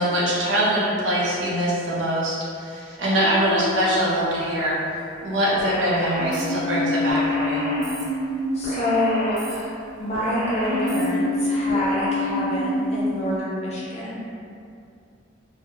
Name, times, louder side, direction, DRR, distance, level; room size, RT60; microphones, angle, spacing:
voice 1, 0.0-4.8 5.2-7.6, equal, 70° right, -6 dB, 0.6 m, -23 dB
sound 1, 3.2-5.3 6.2-9.9 10.6-13.4, left 2 dB, 20° right, 1.0 m, -27 dB
sound 2, 5.6-6.4 7.1-8.0 8.6-9.5 10.1-11.0 11.7-12.1, equal, 45° right, 1.0 m, -32 dB
voice 2, 8.5-14.4, left 1 dB, 35° left, -7 dB, 0.6 m, -27 dB
2.3 x 2.1 x 3.0 m, 2.5 s
head